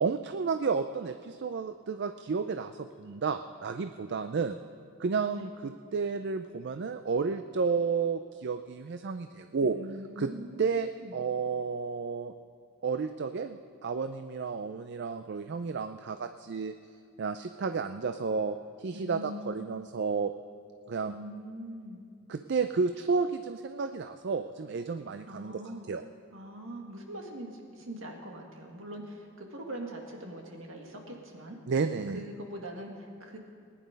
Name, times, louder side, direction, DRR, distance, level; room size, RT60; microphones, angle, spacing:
voice 1, 0.0-4.6 5.0-9.8 10.2-10.3 10.6-12.3 12.8-16.7 17.2-20.3 20.9-21.1 22.3-25.6 25.9-26.0 31.7-32.2, right 5 dB, 55° right, 9 dB, 0.4 m, -31 dB
voice 2, 9.6-11.2 18.9-19.6 21.1-22.0 25.3-25.9 26.3-31.6 32.1-33.4, equal, 70° right, 1 dB, 2.0 m, -42 dB
19.5 x 10.5 x 5.2 m, 2.3 s
head